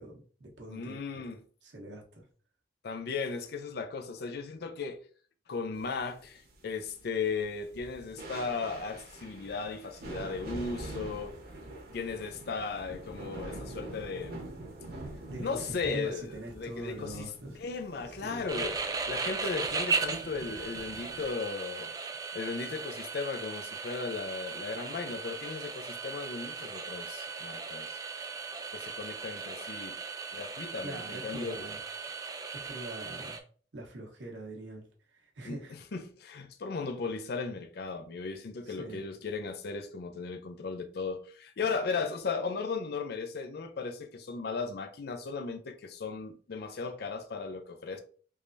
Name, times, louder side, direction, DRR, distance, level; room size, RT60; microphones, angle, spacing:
voice 1, 0.0-1.2 1.6-2.2 15.3-17.6 18.2-18.5 30.8-31.8 32.6-33.4 33.7-34.9 35.1-35.7 38.6-39.1, right 1 dB, 80° right, 1.0 m, -43 dB
voice 2, 0.7-1.4 2.8-5.0 5.5-11.3 11.9-14.5 15.4-17.3 17.6-18.8 19.1-21.9 22.3-28.0 28.7-30.0 30.3-31.7 35.4-48.0, left 4 dB, 60° left, 0.4 m, -36 dB
sound 1, 5.7-21.3, right 2 dB, 55° right, 0.9 m, -46 dB
sound 2, 18.5-33.4, right 4 dB, 20° right, 0.4 m, -37 dB
3.4 x 3.2 x 2.6 m
head